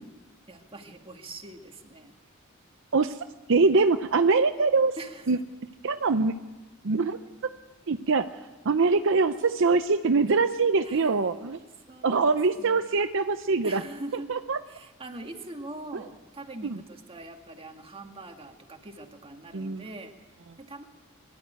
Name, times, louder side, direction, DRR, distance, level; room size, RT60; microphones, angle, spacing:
voice 1, 0.5-2.1 5.0-5.4 10.8-11.5 11.9-12.8 13.6-14.3 14.7-20.1 20.6-20.8, right 2 dB, 25° right, 3 dB, 1.9 m, -43 dB
voice 2, 3.5-4.9 5.3-5.4 5.8-6.4 6.8-7.2 7.9-8.3 8.7-11.6 12.0-13.8 14.3-14.6 16.6-16.8 19.5-19.8, right 4 dB, 65° right, 9 dB, 0.7 m, -23 dB
23.0 x 12.5 x 9.2 m, 1.2 s
head